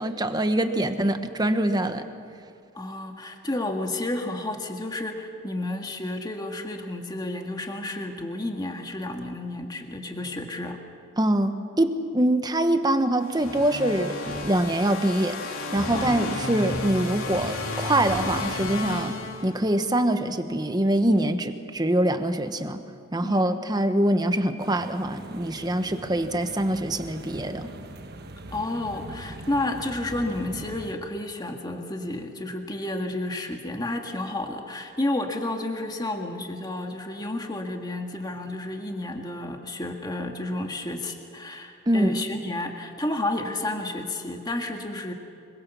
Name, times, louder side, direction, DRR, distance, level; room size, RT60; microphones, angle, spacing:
voice 1, 0.0-2.0 11.2-19.2 19.4-22.8 23.1-27.7 41.9-42.2, right 1 dB, 20° right, 8 dB, 1.2 m, -24 dB
voice 2, 2.7-10.8 15.9-16.0 23.2-23.5 28.5-45.1, left 2 dB, 20° left, 3 dB, 1.7 m, -31 dB
sound 1, 13.2-19.9, left 2 dB, 75° left, 2.8 m, -32 dB
sound 2, 24.6-30.9, right 1 dB, 50° right, 1.3 m, -41 dB
25.5 x 23.0 x 7.1 m, 2.4 s
head